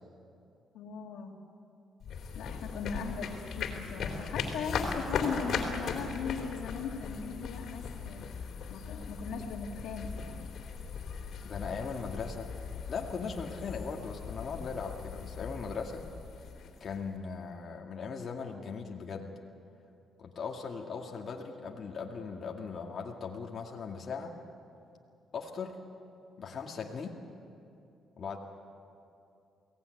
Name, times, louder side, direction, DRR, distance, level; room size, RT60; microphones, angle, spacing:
voice 1, 0.7-1.5 2.3-8.2 8.7-10.5, left 6 dB, 85° left, 2 dB, 2.5 m, -39 dB
sound 1, 2.0-17.2, left 5 dB, 65° left, 3.3 m, -38 dB
voice 2, 11.5-12.5 12.9-16.0 16.8-19.3 20.2-24.3 25.3-25.8 26.4-27.2 28.2-28.4, left 5 dB, 50° left, 0 dB, 2.1 m, -39 dB
22.5 x 17.5 x 9.4 m, 2.6 s
cardioid pair, 90°, 0 cm